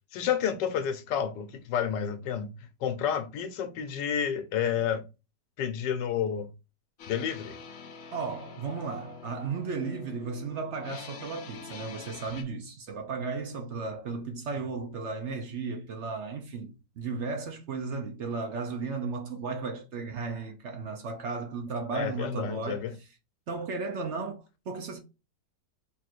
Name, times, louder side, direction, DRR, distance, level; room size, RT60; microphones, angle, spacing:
voice 1, 0.1-2.5 2.8-5.0 5.6-6.5 7.1-7.6 21.9-22.9, left 8 dB, 80° left, 1.3 m, -30 dB
sound 1, 7.0-12.4, left 5 dB, 60° left, 0.9 m, -46 dB
voice 2, 8.1-23.1 23.5-25.0, right 4 dB, 65° right, 0.7 m, -35 dB
3.7 x 2.4 x 4.3 m
omnidirectional pair, 1.9 m